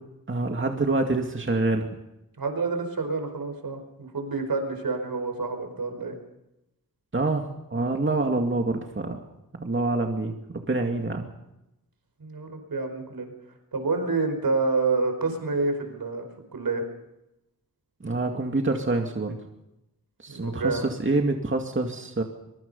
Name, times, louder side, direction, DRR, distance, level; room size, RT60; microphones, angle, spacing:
voice 1, 0.3-1.9 7.1-9.2 9.6-11.3 18.0-19.4 20.2-22.2, right 2 dB, 35° right, 3 dB, 2.4 m, -26 dB
voice 2, 2.4-6.1 12.2-13.3 13.7-16.3 16.5-16.8 20.3-20.9, right 3 dB, 75° right, 6 dB, 5.1 m, -28 dB
24.0 x 23.5 x 5.6 m, 0.90 s
wide cardioid pair, 90°, 36 cm